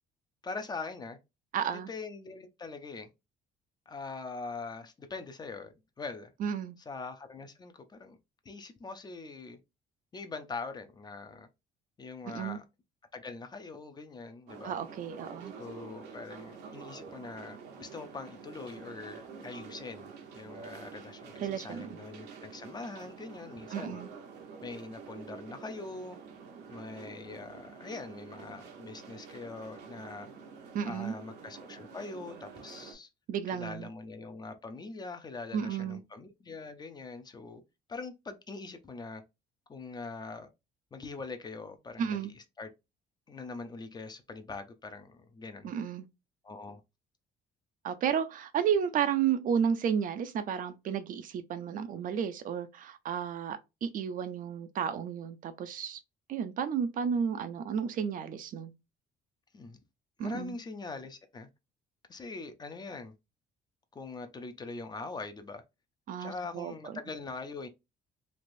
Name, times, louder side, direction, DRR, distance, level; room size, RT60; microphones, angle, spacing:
voice 1, 0.4-1.2 1.9-3.1 3.9-6.3 6.9-8.2 8.4-9.6 10.1-11.5 12.0-12.6 13.1-14.8 15.6-24.0 24.6-26.2 26.7-30.3 30.8-33.1 33.5-37.6 37.9-39.2 39.7-40.5 40.9-42.7 43.3-45.7 46.4-46.8 59.5-59.8 60.2-61.5 62.1-63.1 63.9-65.6 66.2-67.7, left 3 dB, 25° left, 0.5 m, -43 dB
voice 2, 1.5-1.9 6.4-6.8 12.3-12.6 14.6-15.5 21.4-22.0 23.7-24.1 30.7-31.1 33.3-33.9 35.5-36.0 42.0-42.3 45.6-46.1 47.8-56.0 56.3-58.7 60.2-60.6 66.1-67.0, right 8 dB, 55° right, 0.4 m, -32 dB
sound 1, 14.5-32.9, right 5 dB, 85° right, 0.8 m, -48 dB
3.2 x 2.5 x 2.6 m
cardioid pair, 110°, 17 cm